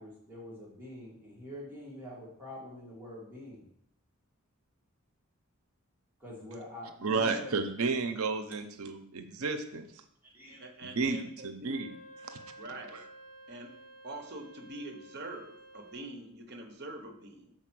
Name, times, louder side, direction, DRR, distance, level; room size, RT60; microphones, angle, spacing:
voice 1, 0.0-3.7 6.2-7.5 10.2-10.6, left 1 dB, 10° right, -6 dB, 2.0 m, -46 dB
voice 2, 7.0-10.0 10.8-11.9 12.2-12.4 12.9-13.0, right 4 dB, 85° right, 8 dB, 0.7 m, -32 dB
voice 3, 10.6-11.7 12.6-13.0 13.5-13.7 14.0-17.5, right 2 dB, 50° right, 4 dB, 1.0 m, -44 dB
Wind instrument woodwind instrument, 11.6-16.1, right 1 dB, 15° left, 1.7 m, -52 dB
6.6 x 4.4 x 6.1 m, 0.71 s
head